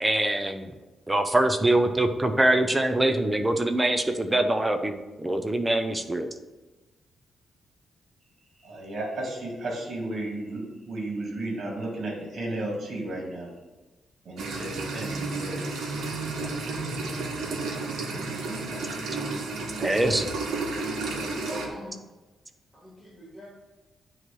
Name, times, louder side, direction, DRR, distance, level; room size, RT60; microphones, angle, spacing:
voice 1, 0.0-0.7 1.1-6.3 19.8-20.3, right 1 dB, 10° right, 7 dB, 0.6 m, -24 dB
voice 2, 8.6-13.5 14.2-15.7 21.0-21.3, right 1 dB, 55° right, -1 dB, 2.4 m, -33 dB
sound 1, 14.4-21.7, right 3 dB, 80° right, 1.4 m, -32 dB
voice 3, 21.1-21.9 22.7-23.5, equal, 5° left, -5 dB, 2.1 m, -42 dB
9.4 x 3.1 x 6.1 m, 1.1 s
cardioid pair, 130°, 0 cm